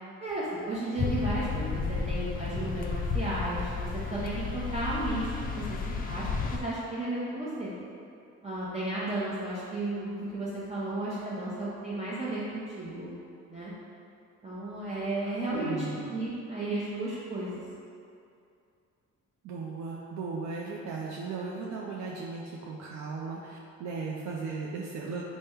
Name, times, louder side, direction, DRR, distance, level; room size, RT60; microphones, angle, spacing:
voice 1, 0.2-7.7 8.4-13.1 13.5-13.7 14.4-15.7 16.1-17.6, right 2 dB, 20° right, -10 dB, 0.8 m, -34 dB
sound 1, 1.0-6.6, left 4 dB, 30° left, 0.4 m, -32 dB
voice 2, 15.5-16.2 19.4-25.2, right 4 dB, 65° right, -3 dB, 0.5 m, -36 dB
3.4 x 2.2 x 4.4 m, 2.5 s
cardioid pair, 90°, 30 cm